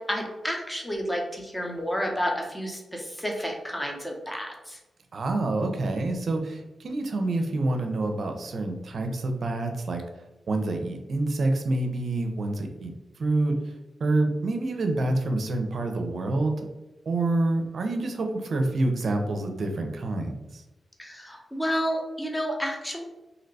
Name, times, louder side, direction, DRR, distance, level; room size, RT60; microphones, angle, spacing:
voice 1, 0.0-4.8 21.0-23.0, equal, 10° left, 1 dB, 0.9 m, -30 dB
voice 2, 5.1-10.0 10.5-12.9 13.2-13.6 14.0-16.6 17.1-20.6, right 2 dB, 70° right, 4 dB, 0.5 m, -27 dB
2.8 x 2.1 x 4.0 m, 1.0 s
cardioid pair, 50°, 0 cm